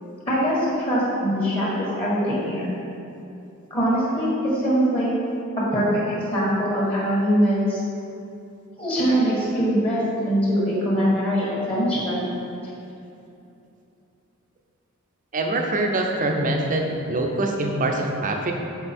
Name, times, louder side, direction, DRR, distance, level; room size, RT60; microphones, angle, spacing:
voice 1, 0.2-2.7 3.7-5.1 5.7-7.8 8.8-12.2, equal, 30° left, -8 dB, 1.5 m, -22 dB
voice 2, 15.3-18.5, right 2 dB, 40° right, 2 dB, 0.6 m, -24 dB
6.8 x 4.6 x 4.3 m, 2.7 s
head